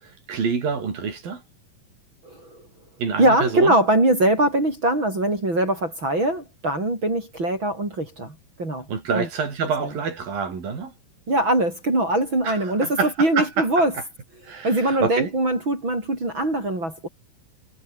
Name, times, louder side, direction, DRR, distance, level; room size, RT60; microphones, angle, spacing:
voice 1, 0.0-1.4 3.0-3.8 8.9-10.9 12.4-14.0 14.4-15.3, right 5 dB, 85° right, 6.6 m, -27 dB
voice 2, 2.2-2.6 3.2-8.9 9.1-9.3 11.3-13.9 14.6-17.1, right 1 dB, 35° right, 8.7 m, -22 dB
omnidirectional pair, 4.0 m